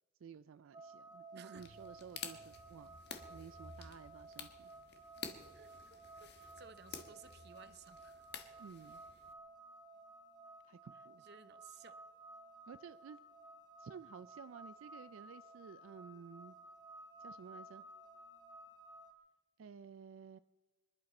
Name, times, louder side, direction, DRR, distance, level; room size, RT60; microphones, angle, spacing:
voice 1, 0.2-3.0 3.3-4.7 8.6-9.0 10.6-11.2 12.7-13.2 13.8-16.6 17.2-17.8 19.6-20.4, right 6 dB, 80° right, 13 dB, 0.4 m, -53 dB
sound 1, 0.7-19.1, right 2 dB, 20° right, 1.1 m, -56 dB
voice 2, 1.3-1.7 5.5-8.3 11.2-12.0, right 6 dB, 55° right, 13 dB, 0.7 m, -58 dB
sound 2, 1.6-9.3, left 6 dB, 55° left, 1.4 m, -51 dB
25.5 x 11.0 x 4.3 m, 1.3 s
head